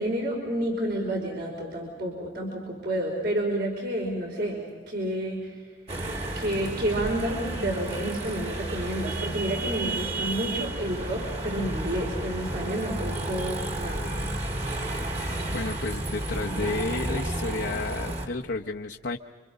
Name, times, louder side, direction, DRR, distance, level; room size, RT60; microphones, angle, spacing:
voice 1, 0.0-4.6 4.9-5.7 6.3-14.1, right 1 dB, 60° right, 0 dB, 5.2 m, -30 dB
sound 1, 5.9-18.3, right 1 dB, 35° right, 2.3 m, -32 dB
voice 2, 15.5-19.2, left 3 dB, 75° left, 0 dB, 1.0 m, -31 dB
30.0 x 25.5 x 5.3 m, 1.4 s
head